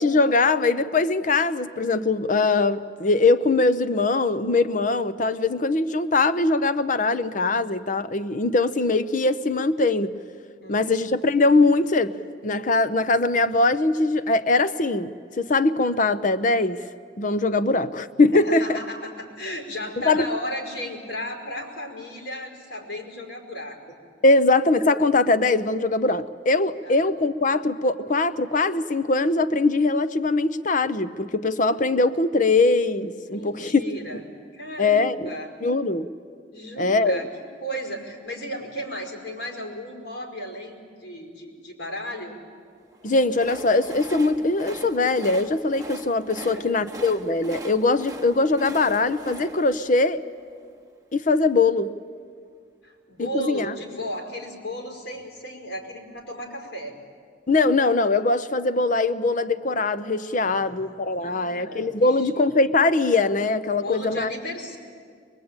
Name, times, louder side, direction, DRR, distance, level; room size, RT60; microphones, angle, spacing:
voice 1, 0.0-10.1 10.7-12.2 12.4-16.8 17.2-18.6 20.0-20.3 24.2-33.7 34.8-35.3 35.6-36.1 36.8-37.2 43.0-50.2 51.1-51.9 53.2-53.7 57.5-64.3, left 3 dB, 45° left, 14 dB, 0.7 m, -21 dB
voice 2, 10.6-10.9 18.3-24.0 26.8-27.0 33.2-34.2 34.5-35.5 36.5-37.3 37.6-42.3 46.4-46.9 52.8-57.0 60.4-60.8 61.2-61.9 62.2-62.4 63.7-64.8, equal, 85° left, 2 dB, 5.1 m, -34 dB
Train, 42.9-51.0, right 1 dB, 20° right, 1.1 m, -41 dB
23.0 x 22.0 x 8.9 m, 2.1 s
head